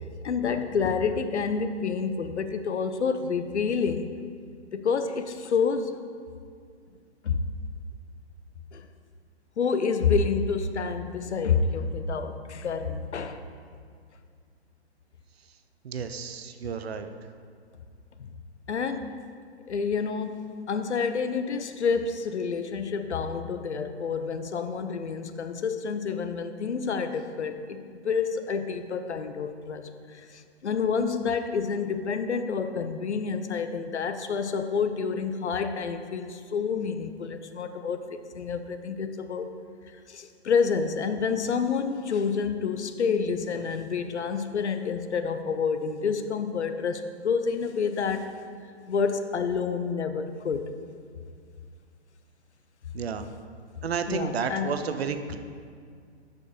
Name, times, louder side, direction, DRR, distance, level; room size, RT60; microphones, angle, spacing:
voice 1, 0.2-4.1 4.7-6.0 7.2-7.4 8.7-8.9 9.6-13.4 18.2-18.3 18.7-19.1 19.7-38.1 38.3-39.5 40.1-48.3 48.9-50.7 54.1-54.7, left 5 dB, 80° left, 9 dB, 0.6 m, -28 dB
voice 2, 15.8-17.1 52.9-53.3 53.8-55.4, right 6 dB, 65° right, 8 dB, 0.6 m, -31 dB
6.6 x 5.3 x 5.2 m, 2.2 s
figure-of-eight pair, 130°, 34 cm